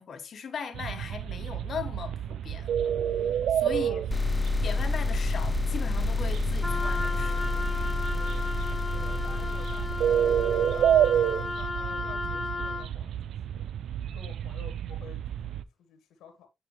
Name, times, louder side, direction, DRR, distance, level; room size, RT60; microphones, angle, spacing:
voice 1, 0.0-2.7 3.5-4.0 4.6-7.5, left 6 dB, 55° left, 1.4 m, -38 dB
sound 1, 0.7-15.6, right 10 dB, 70° right, 0.4 m, -30 dB
voice 2, 3.7-4.0 8.7-13.7 14.1-16.5, left 7 dB, 85° left, 1.7 m, -50 dB
sound 2, 4.1-11.6, left 4 dB, 25° left, 0.5 m, -30 dB
Wind instrument woodwind instrument, 6.6-12.9, left 3 dB, 5° right, 1.4 m, -35 dB
9.5 x 4.3 x 3.1 m
cardioid pair, 90°, 0 cm